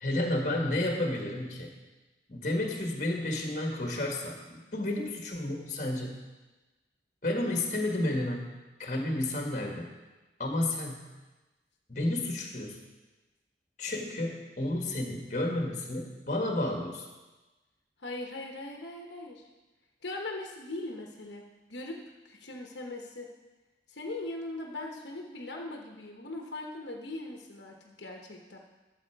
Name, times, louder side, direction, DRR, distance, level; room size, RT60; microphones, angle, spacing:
voice 1, 0.0-1.7 2.3-6.2 7.2-8.5 8.8-9.9 10.4-11.1 11.9-12.8 13.8-17.0, left 1 dB, 45° left, 1 dB, 1.7 m, -31 dB
voice 2, 18.0-19.5 20.0-22.0 22.2-23.3 23.9-28.6, left 2 dB, 80° left, 1 dB, 1.1 m, -40 dB
12.5 x 7.7 x 4.7 m, 1.2 s
head